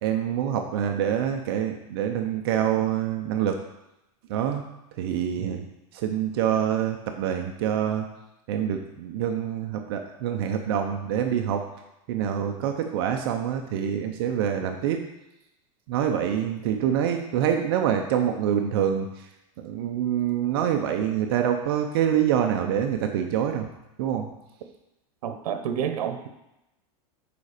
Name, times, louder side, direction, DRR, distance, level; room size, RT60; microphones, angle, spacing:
voice 1, 0.0-3.6 4.3-4.6 5.0-5.6 5.9-8.1 8.5-11.6 12.1-15.0 15.9-19.1 19.6-23.7 24.0-24.3, right 9 dB, 40° right, 4 dB, 0.6 m, -26 dB
voice 2, 25.2-26.3, right 8 dB, 90° right, 8 dB, 0.8 m, -30 dB
6.8 x 5.0 x 4.9 m, 0.92 s
supercardioid pair, 175°, 19 cm